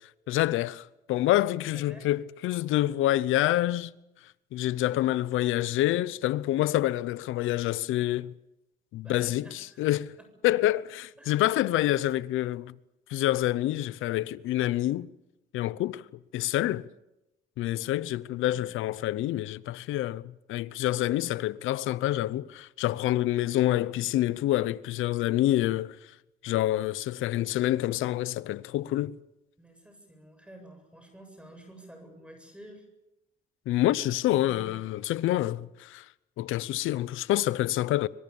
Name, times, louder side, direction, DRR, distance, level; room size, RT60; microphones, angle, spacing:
voice 1, 0.3-3.9 4.5-8.3 8.9-10.1 10.4-12.7 13.1-15.1 15.5-16.0 16.3-16.9 17.6-26.1 26.4-29.2 33.7-36.1 36.4-38.1, left 14 dB, 90° left, 0.8 m, -27 dB
voice 2, 1.7-2.1 9.0-9.9 10.2-10.3 11.2-11.4 18.5-18.8 29.6-32.9 34.3-34.8, right 1 dB, 5° right, 7.8 m, -50 dB
25.0 x 24.0 x 7.1 m
cardioid pair, 90°, 20 cm